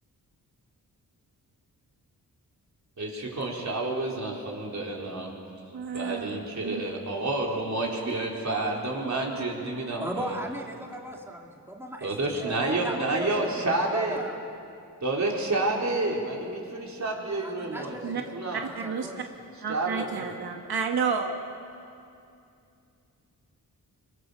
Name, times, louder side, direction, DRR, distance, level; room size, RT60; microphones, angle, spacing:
voice 1, 3.0-5.3 5.9-10.3 12.0-14.2 15.0-18.0 18.3-18.6 19.7-20.3, right 2 dB, 45° right, -1 dB, 4.2 m, -29 dB
voice 2, 5.7-6.4 6.6-6.8 18.0-18.2 18.5-19.1 19.6-21.3, right 6 dB, 75° right, 3 dB, 1.4 m, -30 dB
voice 3, 10.0-14.4 17.4-18.4 18.7-19.2, right 1 dB, 5° right, 0 dB, 2.2 m, -37 dB
23.5 x 22.0 x 7.0 m, 2.5 s
wide cardioid pair, 85°, 37 cm